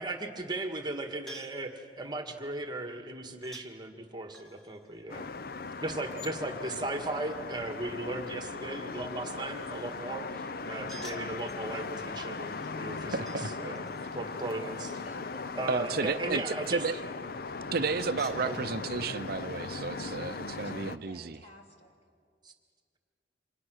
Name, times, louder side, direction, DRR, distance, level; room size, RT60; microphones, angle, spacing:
voice 1, 0.0-5.3 5.8-13.8 14.1-15.0 15.5-16.8 18.4-18.6 22.4-22.5, right 2 dB, 25° right, 6 dB, 1.7 m, -37 dB
sound 1, 1.3-1.7 3.4-3.7 4.3-6.1 10.6-11.7 12.6-13.5 13.7-15.6 17.5-18.4, right 1 dB, ahead, 1.4 m, -52 dB
sound 2, 5.1-21.0, left 4 dB, 55° left, 0.7 m, -39 dB
voice 2, 13.1-13.5 15.7-16.4 16.7-17.0 17.7-21.4, right 4 dB, 60° right, 11 dB, 0.6 m, -32 dB
voice 3, 15.0-15.8 20.6-22.0, right 1 dB, 40° left, 2 dB, 3.0 m, -52 dB
29.5 x 25.5 x 6.4 m, 2.1 s
head